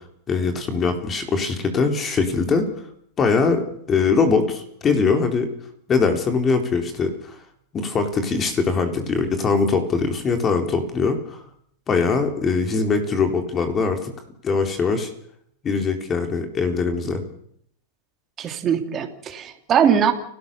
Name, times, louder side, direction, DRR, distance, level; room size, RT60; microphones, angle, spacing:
voice 1, 0.3-2.7 3.2-5.5 5.9-7.4 7.7-11.4 11.9-14.1 14.4-15.1 15.6-17.2, left 4 dB, 25° left, 5 dB, 3.8 m, -22 dB
voice 2, 18.4-20.1, right 8 dB, 30° right, 5 dB, 3.1 m, -21 dB
29.5 x 13.0 x 6.9 m, 0.67 s
hypercardioid pair, 120°, 0 cm